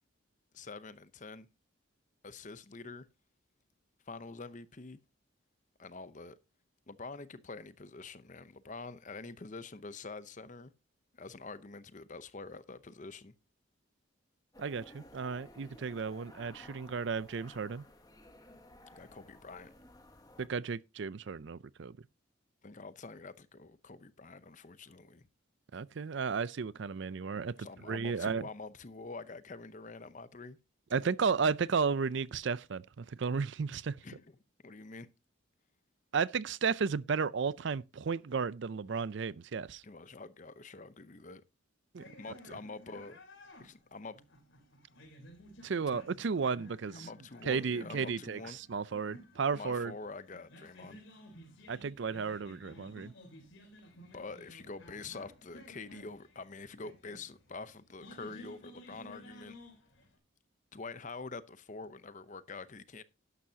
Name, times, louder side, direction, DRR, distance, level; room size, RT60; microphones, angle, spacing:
voice 1, 0.5-1.5 2.2-3.1 4.1-5.0 5.8-6.4 6.9-10.7 11.1-13.3 18.9-19.7 22.6-25.3 27.6-30.6 34.0-34.4 34.6-35.1 39.8-41.4 42.2-43.2 43.6-44.2 45.9-46.1 46.9-48.6 49.5-51.0 54.1-59.6 60.7-63.0, left 3 dB, 35° left, 0.7 m, -46 dB
sound 1, 14.5-20.5, left 1 dB, 20° left, 1.3 m, -56 dB
voice 2, 14.6-17.8 20.4-21.9 25.7-27.5 27.9-28.4 30.9-34.0 36.1-39.8 41.9-42.0 45.6-47.1 47.5-49.9 51.7-53.1, right 5 dB, 60° right, 0.4 m, -33 dB
sound 2, 42.0-60.2, equal, 65° left, 3.7 m, -55 dB
12.0 x 11.0 x 2.8 m
head